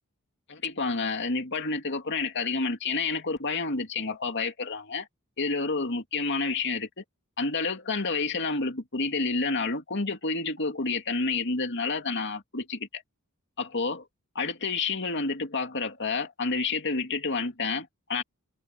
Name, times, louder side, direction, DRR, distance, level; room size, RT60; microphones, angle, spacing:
voice 1, 0.5-5.1 5.4-7.0 7.4-13.0 13.6-14.0 14.3-18.2, left 3 dB, 55° left, 2.7 m, -29 dB
head